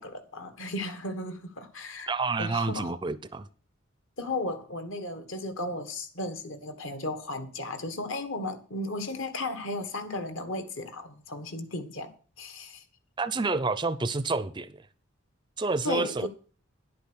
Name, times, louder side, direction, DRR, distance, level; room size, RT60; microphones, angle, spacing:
voice 1, 0.0-2.1 2.4-2.9 4.2-12.8 15.8-16.3, left 2 dB, 65° left, 1.6 m, -35 dB
voice 2, 2.1-3.5 13.2-14.8 15.6-16.3, right 3 dB, 20° right, 0.5 m, -29 dB
11.0 x 8.6 x 6.2 m
head